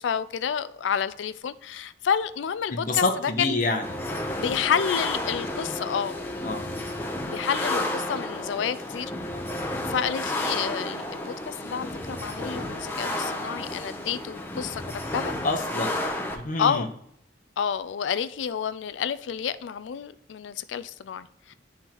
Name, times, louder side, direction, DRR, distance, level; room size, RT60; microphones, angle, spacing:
voice 1, 0.0-3.6 4.4-6.2 7.3-9.1 9.9-14.8 15.1-15.3 16.6-16.9 17.6-21.5, left 7 dB, 90° left, 0.4 m, -29 dB
voice 2, 2.7-3.9 6.4-6.9 15.4-16.0 16.3-16.9, left 3 dB, 45° left, 0.9 m, -27 dB
sound 1, 3.8-16.4, left 1 dB, 10° left, 0.7 m, -32 dB
10.5 x 3.6 x 3.0 m
head